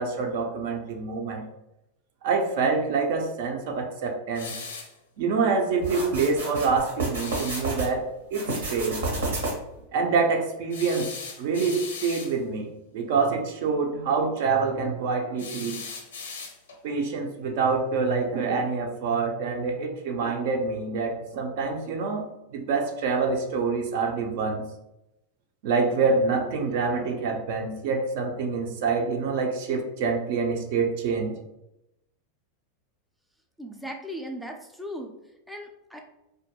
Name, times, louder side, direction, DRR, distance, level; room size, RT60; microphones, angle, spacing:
voice 1, 0.0-1.4 2.2-4.6 5.2-9.1 9.9-11.1 11.4-15.8 16.8-24.6 25.6-31.4, right 4 dB, 65° right, 4 dB, 0.5 m, -26 dB
sound 1, 4.3-5.0 7.1-7.7 10.7-12.4 15.4-16.8, left 5 dB, 90° left, 0.5 m, -38 dB
sound 2, 5.8-7.9 8.3-9.8, right 2 dB, 90° right, 0.9 m, -30 dB
voice 2, 33.6-35.1 35.5-36.0, equal, ahead, 2 dB, 0.3 m, -37 dB
2.3 x 2.1 x 2.8 m, 0.88 s
hypercardioid pair, 115°, 0 cm